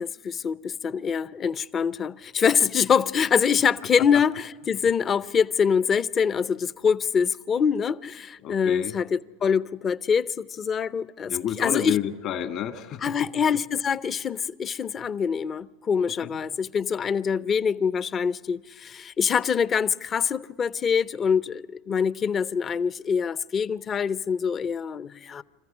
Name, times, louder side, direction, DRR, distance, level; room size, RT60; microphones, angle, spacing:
voice 1, 0.0-12.0 13.0-25.4, left 6 dB, 30° left, 0.6 m, -25 dB
voice 2, 8.4-8.9 11.3-13.0 16.2-16.4, left 10 dB, 50° left, 1.8 m, -29 dB
27.0 x 14.5 x 9.8 m
hypercardioid pair, 100°, 0 cm